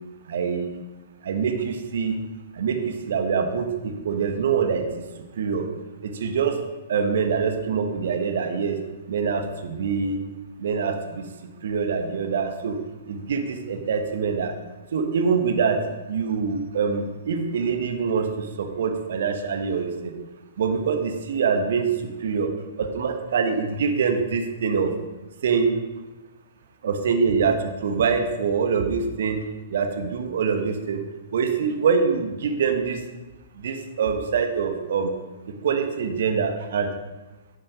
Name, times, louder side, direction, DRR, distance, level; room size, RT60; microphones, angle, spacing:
voice 1, 0.3-0.7 1.2-2.1 2.5-4.8 5.4-5.7 6.0-6.6 6.9-8.8 9.1-10.2 10.6-11.3 11.6-12.8 13.1-14.5 14.9-15.8 16.1-20.1 20.6-21.9 22.2-22.5 22.8-24.9 25.4-25.7 26.8-29.4 29.7-31.0 31.3-33.0 33.6-35.1 35.6-36.9, right 6 dB, 60° right, 6 dB, 1.3 m, -24 dB
11.5 x 6.3 x 5.3 m, 1.1 s
figure-of-eight pair, 115°, 0 cm